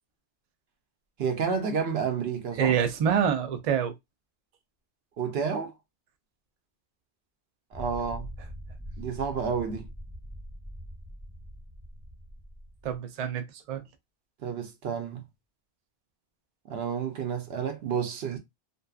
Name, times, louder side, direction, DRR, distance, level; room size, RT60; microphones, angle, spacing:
voice 1, 1.2-2.7 5.2-5.7 7.7-8.3 9.0-9.9 14.4-15.2 16.7-18.4, right 6 dB, 80° right, 0.9 m, -30 dB
voice 2, 2.6-3.9 12.8-13.8, right 8 dB, 50° right, 0.5 m, -26 dB
sound 1, 7.7-13.0, equal, 10° right, 0.7 m, -43 dB
2.6 x 2.2 x 2.3 m
omnidirectional pair, 1.0 m